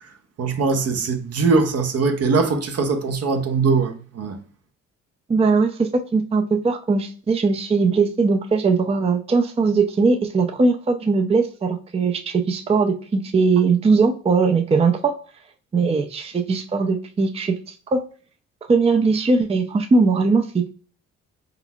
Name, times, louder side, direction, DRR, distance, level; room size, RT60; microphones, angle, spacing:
voice 1, 0.4-4.4, right 4 dB, 55° right, 0.8 m, -21 dB
voice 2, 5.3-15.1 15.7-18.0 18.7-20.7, right 4 dB, 20° right, 0.5 m, -20 dB
4.2 x 3.9 x 2.3 m
cardioid pair, 90°, 30 cm